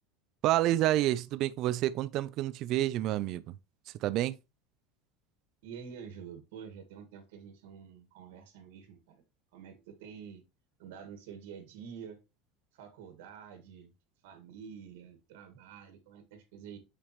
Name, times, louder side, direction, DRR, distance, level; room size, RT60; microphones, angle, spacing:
voice 1, 0.4-3.6 4.0-4.4, right 14 dB, 40° right, 0.4 m, -29 dB
voice 2, 5.6-9.2 9.5-10.4 10.8-12.2 12.7-13.9 14.2-16.8, right 7 dB, 80° right, 1.8 m, -48 dB
7.1 x 5.1 x 3.0 m
cardioid pair, 175°, 0 cm